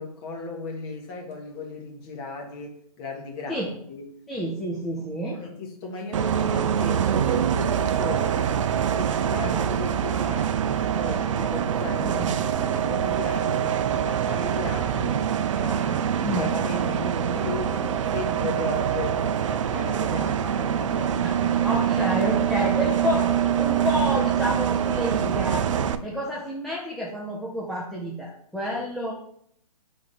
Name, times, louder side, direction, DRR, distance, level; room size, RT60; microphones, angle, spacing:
voice 1, 0.0-4.1 5.3-8.4 8.9-12.2 12.6-15.3 16.3-21.2 22.5-22.7, left 3 dB, 25° left, 1.3 m, -36 dB
voice 2, 4.3-5.4 9.4-9.5 12.0-12.3 15.5-16.5 21.2-23.3 23.6-25.6 26.0-29.1, equal, ahead, 0.4 m, -29 dB
Bus, 6.1-25.9, right 9 dB, 55° right, 0.5 m, -24 dB
4.8 x 3.6 x 5.6 m
hypercardioid pair, 145°, 19 cm